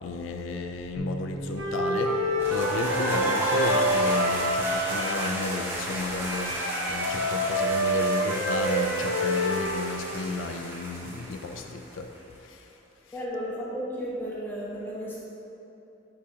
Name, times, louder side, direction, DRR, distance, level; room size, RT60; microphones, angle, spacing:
voice 1, 0.0-2.2 2.5-12.7, left 3 dB, 90° left, 4 dB, 0.4 m, -33 dB
Bass guitar, 1.0-7.2, right 2 dB, 50° left, 1.1 m, -44 dB
Wind instrument woodwind instrument, 1.6-5.4 6.2-9.9, right 1 dB, 75° right, 0.8 m, -27 dB
sound 1, 2.4-12.2, right 1 dB, 15° right, 0.9 m, -33 dB
voice 2, 13.1-15.2, equal, 10° left, -7 dB, 1.1 m, -33 dB
8.3 x 4.8 x 2.8 m, 2.9 s
head